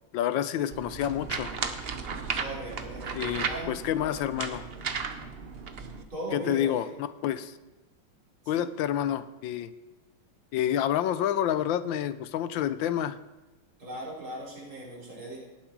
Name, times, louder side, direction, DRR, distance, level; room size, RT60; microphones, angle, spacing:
voice 1, 0.1-1.5 3.1-4.7 6.3-6.9 7.2-7.6 8.5-9.7 10.5-13.2, left 10 dB, 75° left, 13 dB, 1.3 m, -28 dB
sound 1, 0.7-6.0, right 5 dB, 55° right, 0.7 m, -35 dB
voice 2, 2.4-3.7 6.1-6.9 8.4-8.7 13.8-15.4, right 1 dB, 90° right, -6 dB, 5.5 m, -38 dB
18.0 x 7.4 x 4.7 m, 1.1 s
omnidirectional pair, 2.2 m